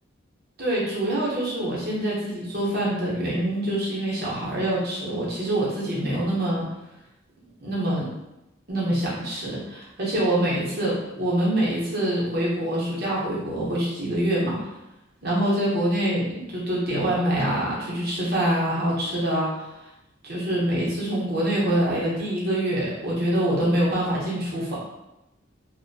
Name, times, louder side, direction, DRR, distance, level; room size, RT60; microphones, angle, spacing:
voice 1, 0.6-6.6 7.6-8.1 8.7-14.6 15.2-19.7 20.2-24.8, right 1 dB, 55° right, -6 dB, 1.0 m, -25 dB
2.7 x 2.2 x 2.7 m, 0.94 s
head